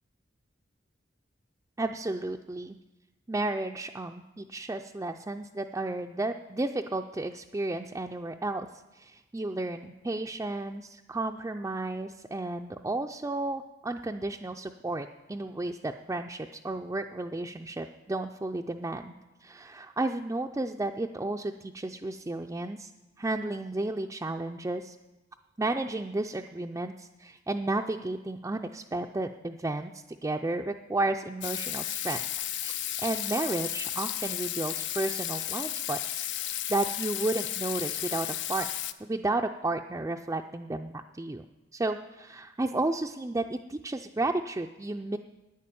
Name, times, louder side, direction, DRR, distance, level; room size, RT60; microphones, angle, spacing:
voice 1, 1.8-2.8 3.3-8.7 8.9-19.1 19.4-22.9 23.2-25.0 25.6-32.2 32.6-32.7 33.0-38.7 39.0-41.4 41.7-45.2, right 2 dB, 15° right, 2 dB, 0.4 m, -32 dB
Water tap faucet / Sink (filling or washing), 31.4-38.9, left 12 dB, 70° left, 0.6 m, -33 dB
11.0 x 9.8 x 8.5 m, 1.1 s
head